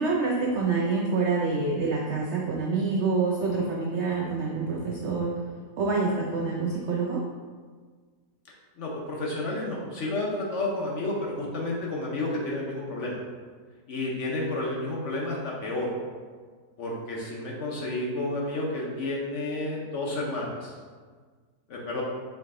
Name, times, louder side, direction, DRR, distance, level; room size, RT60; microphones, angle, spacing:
voice 1, 0.0-5.3 5.8-7.2, right 4 dB, 75° right, -2 dB, 0.6 m, -26 dB
voice 2, 8.8-13.2 13.9-15.9 16.8-20.7 21.7-22.0, left 2 dB, 60° left, -3 dB, 0.9 m, -31 dB
4.6 x 3.1 x 3.6 m, 1.5 s
omnidirectional pair, 1.7 m